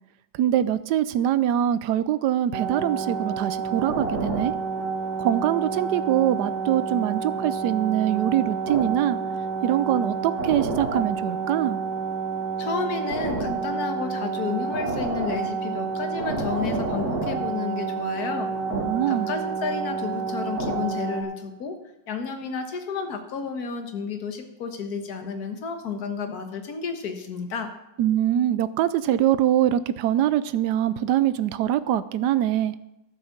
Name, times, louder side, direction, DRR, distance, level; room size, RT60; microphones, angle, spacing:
voice 1, 0.4-4.5 5.2-9.2 9.6-11.8 18.7-19.3 28.0-32.7, right 11 dB, 70° right, 15 dB, 1.1 m, -23 dB
sound 1, 2.5-21.2, right 4 dB, 55° right, 2.3 m, -29 dB
voice 2, 12.6-18.5 19.1-21.8 22.1-27.7, left 5 dB, 55° left, 6 dB, 1.7 m, -31 dB
12.5 x 7.4 x 7.2 m, 0.91 s
omnidirectional pair, 2.0 m